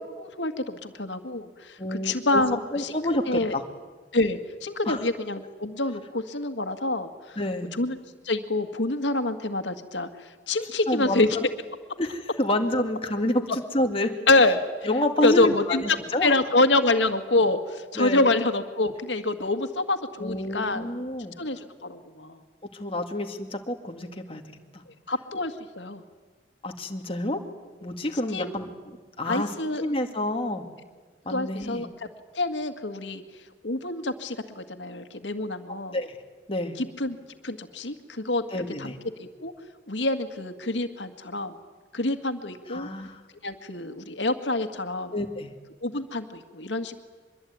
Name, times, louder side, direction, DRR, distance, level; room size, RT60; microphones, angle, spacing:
voice 1, 0.0-2.9 3.3-3.6 4.1-7.4 7.7-8.0 8.2-10.1 10.5-11.4 14.3-14.6 15.2-20.9 21.4-22.4 25.1-26.0 28.3-28.5 29.3-29.8 31.3-31.9 32.4-33.2 33.6-36.0 36.8-37.2 37.4-39.5 39.9-41.6 41.9-42.9 43.4-45.1 45.8-47.0, left 2 dB, 80° left, 8 dB, 1.9 m, -26 dB
voice 2, 1.8-2.4 2.7-3.6 4.9-5.0 7.4-7.7 10.9-11.4 12.0-13.5 13.7-14.1 14.8-16.3 18.0-18.3 20.2-21.4 22.7-24.4 26.6-27.4 27.8-29.5 29.8-30.7 31.3-31.8 35.7-36.2 36.5-36.8 38.5-39.0 42.7-43.2 45.1-45.5, left 1 dB, 30° left, 4 dB, 2.2 m, -28 dB
24.0 x 22.5 x 9.5 m, 1.4 s
head